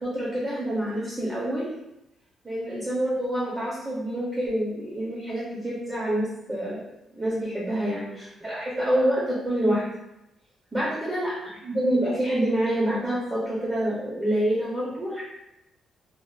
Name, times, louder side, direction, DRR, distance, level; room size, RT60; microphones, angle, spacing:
voice 1, 0.0-1.7 2.4-6.8 7.1-9.8 10.7-11.3 11.6-15.2, right 1 dB, 15° right, -6 dB, 0.5 m, -27 dB
3.2 x 2.2 x 2.3 m, 0.88 s
cardioid pair, 180°, 0 cm